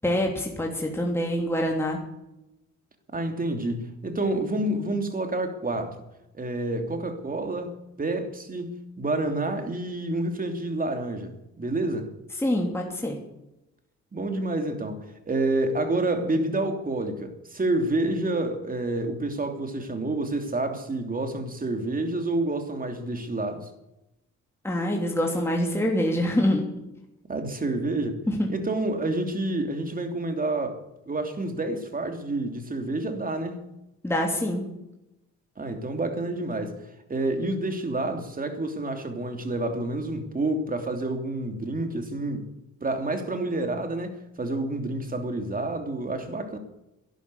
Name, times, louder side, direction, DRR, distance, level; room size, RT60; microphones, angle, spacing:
voice 1, 0.0-2.0 12.4-13.2 24.6-26.6 28.3-28.5 34.0-34.6, left 1 dB, 10° left, 3.0 m, -25 dB
voice 2, 3.1-6.0 6.3-12.1 14.1-23.7 27.3-33.6 35.6-42.5 42.8-46.6, right 2 dB, 30° right, 3.0 m, -29 dB
12.0 x 11.0 x 9.7 m
cardioid pair, 90°, 30 cm